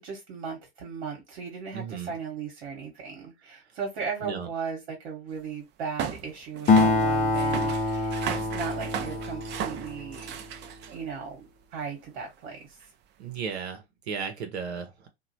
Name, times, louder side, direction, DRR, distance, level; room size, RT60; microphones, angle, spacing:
voice 1, 0.0-10.4 10.9-12.8, right 5 dB, 60° right, 1.2 m, -37 dB
voice 2, 1.7-2.1 4.2-4.5 13.2-15.1, right 6 dB, 75° right, 0.8 m, -35 dB
sound 1, 6.0-11.2 12.0-12.1 12.8-12.9, right 9 dB, 35° right, 0.5 m, -36 dB
Acoustic guitar, 6.7-10.5, left 3 dB, 25° left, 0.5 m, -25 dB
3.0 x 2.3 x 2.7 m
hypercardioid pair, 90°, 33 cm